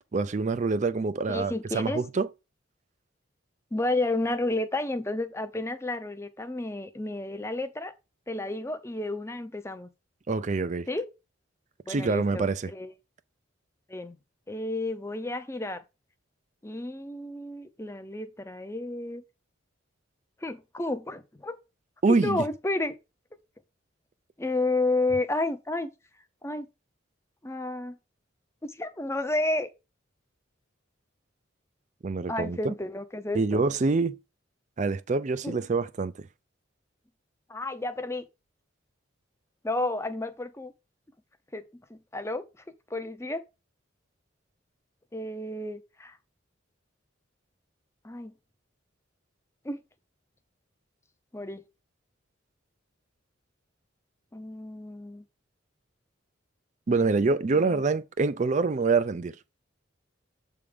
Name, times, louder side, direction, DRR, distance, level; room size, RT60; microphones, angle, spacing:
voice 1, 0.1-2.3 10.3-10.9 11.9-12.7 22.0-22.4 32.0-32.7 33.3-34.2 34.8-36.3 56.9-59.4, right 4 dB, 40° right, 0.4 m, -26 dB
voice 2, 1.3-2.0 3.7-7.9 8.3-9.9 10.9-11.1 11.9-12.9 13.9-14.2 14.5-15.8 16.6-19.2 20.4-21.6 22.1-23.0 24.4-25.9 26.4-26.7 27.4-28.0 28.6-29.7 32.3-33.6 35.4-35.6 37.5-38.3 39.6-40.7 41.5-42.4 42.9-43.4 45.1-46.2 48.0-48.3 49.6-49.8 51.3-51.6 54.3-55.2 57.5-57.8, left 2 dB, 15° left, 0.6 m, -31 dB
7.9 x 3.6 x 5.0 m
head